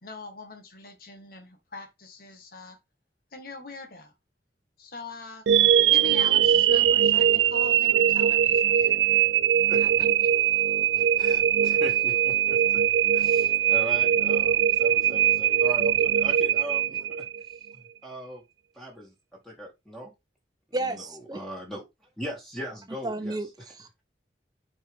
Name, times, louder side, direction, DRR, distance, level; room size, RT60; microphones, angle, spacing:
voice 1, 0.0-2.8 3.3-4.1 4.8-5.5 5.9-9.0 9.8-10.3, left 3 dB, 55° left, 1.7 m, -42 dB
sound 1, 5.5-17.6, right 10 dB, 90° right, 0.4 m, -21 dB
voice 2, 10.9-12.8 13.1-17.2 18.0-18.4 18.7-19.1 19.4-20.1 20.9-21.0 21.3-21.8 22.2-23.4, right 1 dB, ahead, 2.3 m, -39 dB
voice 3, 20.7-21.4 23.0-24.0, right 2 dB, 25° right, 1.0 m, -32 dB
7.7 x 4.7 x 3.6 m
head